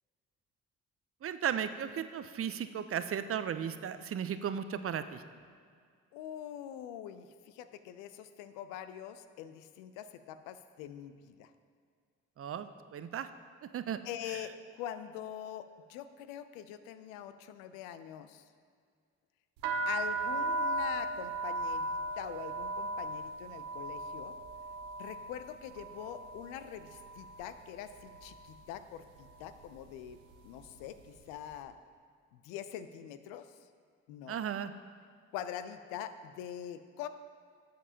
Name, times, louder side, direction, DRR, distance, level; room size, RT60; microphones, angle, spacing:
voice 1, 1.2-5.2 12.4-13.3 13.7-14.0 14.3-14.4 34.3-34.7, right 8 dB, 45° right, 11 dB, 0.6 m, -35 dB
voice 2, 6.1-11.5 14.0-18.4 19.9-24.4 25.0-31.8 32.3-33.5 34.1-34.4 35.3-37.1, left 10 dB, 90° left, 11 dB, 0.5 m, -44 dB
sound 1, 19.6-27.5 27.8-28.4 29.1-29.4 29.6-31.1, right 2 dB, 90° right, 0.6 m, -37 dB
12.0 x 7.5 x 2.8 m, 2.1 s
supercardioid pair, 55°, 32 cm